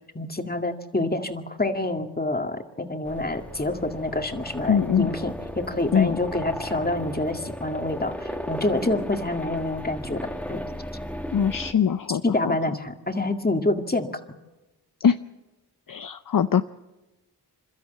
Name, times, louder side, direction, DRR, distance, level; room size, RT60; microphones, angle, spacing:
voice 1, 0.1-10.2 10.5-10.6 12.2-14.1, left 2 dB, 25° left, 5 dB, 2.1 m, -27 dB
sound 1, 3.0-11.7, equal, 5° left, 1.6 m, -35 dB
voice 2, 4.7-5.1 5.9-6.1 11.3-12.6 15.0-15.2 15.9-16.6, left 7 dB, 55° left, 11 dB, 0.6 m, -22 dB
28.0 x 13.0 x 8.3 m, 1.1 s
cardioid pair, 50°, 40 cm